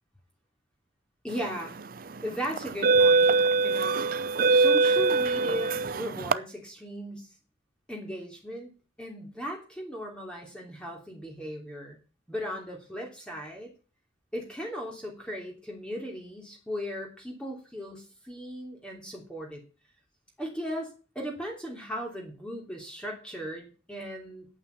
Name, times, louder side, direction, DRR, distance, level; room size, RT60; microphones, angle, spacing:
voice 1, 1.2-1.8 2.2-3.4 3.6-4.0 4.5-7.3 7.9-8.7 9.0-12.0 12.3-13.7 14.3-19.6 20.4-24.5, equal, 5° left, 0 dB, 3.1 m, -37 dB
sound 1, 1.6-1.8 2.5-6.3, right 4 dB, 50° right, 0.6 m, -22 dB
9.2 x 8.8 x 8.3 m, 0.35 s
head